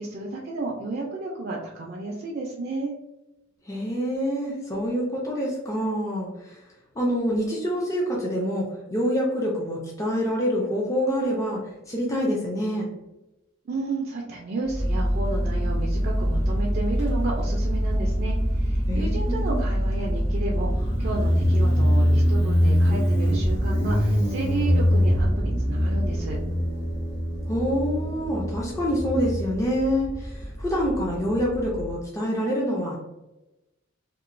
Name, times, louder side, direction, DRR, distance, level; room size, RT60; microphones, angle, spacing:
voice 1, 0.0-2.9 13.7-26.4, right 3 dB, 50° right, -2 dB, 0.4 m, -32 dB
voice 2, 3.6-6.6 7.0-12.9 18.9-19.6 27.5-33.0, equal, 15° left, -3 dB, 0.4 m, -26 dB
Motorcycle, 14.7-31.9, equal, 70° left, 1.5 m, -24 dB
2.9 x 2.1 x 2.5 m, 0.97 s
head